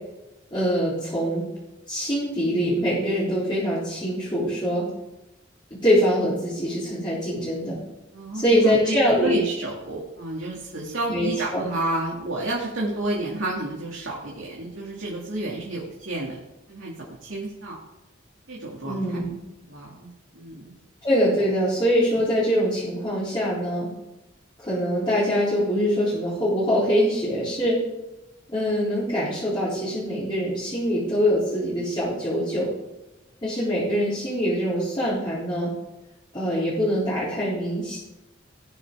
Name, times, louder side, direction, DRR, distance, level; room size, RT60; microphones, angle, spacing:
voice 1, 0.5-1.4 1.9-4.9 5.8-7.8 8.3-9.4 11.1-11.6 18.8-19.3 21.0-23.9 24.6-27.8 28.5-32.7 33.4-35.7 36.3-38.0, equal, 25° left, -10 dB, 3.8 m, -23 dB
voice 2, 8.1-9.0 9.2-16.3 16.7-17.8 18.5-19.2 19.7-20.7, right 2 dB, 75° right, -4 dB, 2.6 m, -30 dB
19.0 x 6.8 x 3.8 m, 0.97 s
head